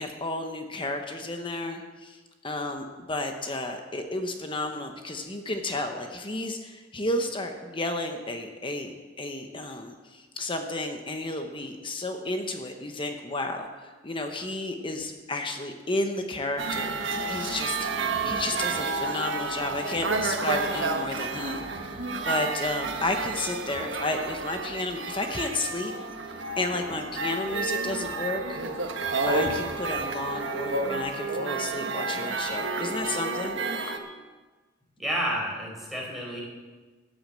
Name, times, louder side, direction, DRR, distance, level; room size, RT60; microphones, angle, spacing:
voice 1, 0.0-16.9 17.3-25.9 26.6-28.6 29.2-33.6, left 2 dB, 25° left, 5 dB, 1.0 m, -32 dB
sound 1, 16.6-34.0, right 3 dB, 90° right, 1.4 m, -30 dB
voice 2, 35.0-36.4, equal, ahead, -4 dB, 4.5 m, -30 dB
14.5 x 8.8 x 7.5 m, 1.3 s
head